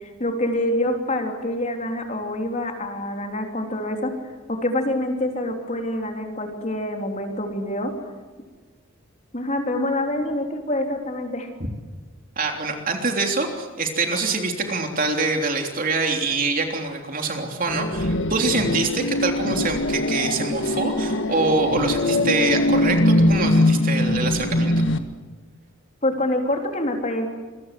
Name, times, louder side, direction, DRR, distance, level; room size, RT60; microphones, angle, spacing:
voice 1, 0.0-4.1 4.5-7.9 9.3-11.5 26.0-27.3, left 1 dB, 35° left, 3 dB, 3.6 m, -26 dB
voice 2, 12.4-24.8, right 3 dB, 40° right, 3 dB, 3.4 m, -25 dB
sound 1, 17.7-25.0, left 1 dB, 60° left, 1.6 m, -22 dB
27.0 x 23.0 x 7.7 m, 1.4 s
head